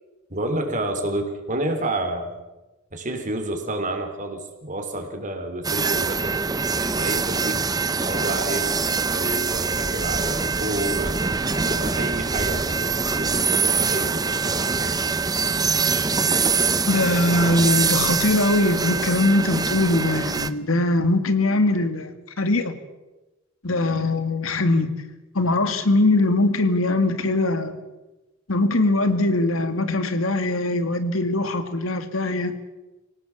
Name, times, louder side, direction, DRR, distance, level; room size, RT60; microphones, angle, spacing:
voice 1, 0.3-2.3 2.9-6.4 6.9-7.6 8.0-8.7 9.1-15.0, right 1 dB, 40° right, 6 dB, 3.7 m, -29 dB
sound 1, 5.6-20.5, right 4 dB, 20° right, 0.8 m, -24 dB
voice 2, 16.9-22.7 23.6-24.9 25.3-27.8 28.5-32.6, left 2 dB, 85° left, 9 dB, 2.2 m, -21 dB
25.5 x 18.0 x 7.2 m, 1.1 s
head